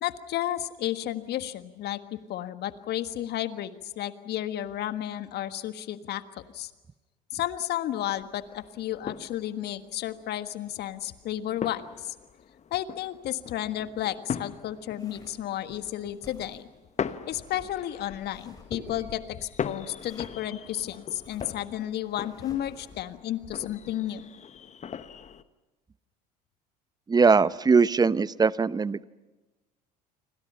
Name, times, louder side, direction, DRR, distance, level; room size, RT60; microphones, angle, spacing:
voice 1, 0.0-6.7 7.3-12.1 12.7-16.7 17.3-24.2, left 12 dB, 55° left, 10 dB, 1.6 m, -32 dB
sound 1, 8.0-25.4, left 7 dB, 35° left, 1.2 m, -40 dB
sound 2, 14.9-23.2, left 2 dB, 15° left, 7.9 m, -50 dB
voice 2, 27.1-29.0, right 5 dB, 20° right, 18 dB, 0.8 m, -21 dB
29.0 x 25.0 x 5.7 m, 1.1 s
hypercardioid pair, 70°, 21 cm